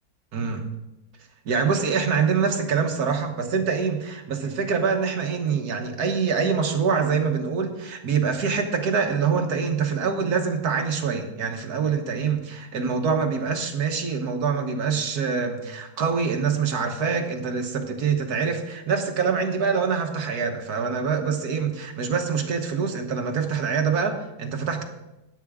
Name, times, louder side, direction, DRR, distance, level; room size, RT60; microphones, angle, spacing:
voice 1, 0.3-0.6 1.4-24.8, right 5 dB, 80° right, 5 dB, 1.6 m, -25 dB
12.5 x 9.4 x 3.6 m, 0.96 s
omnidirectional pair, 1.6 m